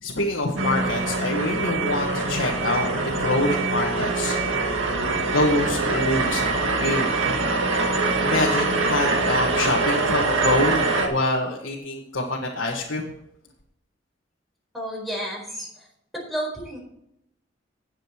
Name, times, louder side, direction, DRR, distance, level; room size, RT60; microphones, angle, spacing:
voice 1, 0.0-4.4 5.3-7.5 8.2-13.1, left 2 dB, 70° left, -2 dB, 1.6 m, -26 dB
sound 1, 0.6-11.1, right 3 dB, 80° right, 1.9 m, -24 dB
voice 2, 14.7-15.7 16.3-16.8, right 1 dB, ahead, -3 dB, 4.5 m, -31 dB
18.0 x 7.7 x 3.1 m, 0.77 s
head